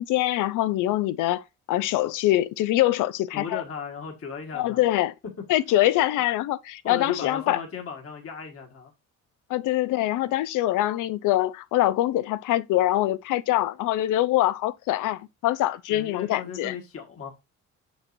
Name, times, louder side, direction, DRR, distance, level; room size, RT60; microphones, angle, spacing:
voice 1, 0.0-3.6 4.5-5.1 5.5-7.6 9.5-16.7, left 15 dB, 85° left, 0.5 m, -24 dB
voice 2, 3.3-4.9 6.8-8.9 15.9-17.3, left 6 dB, 50° left, 1.5 m, -36 dB
6.3 x 6.0 x 2.6 m
cardioid pair, 90°, 30 cm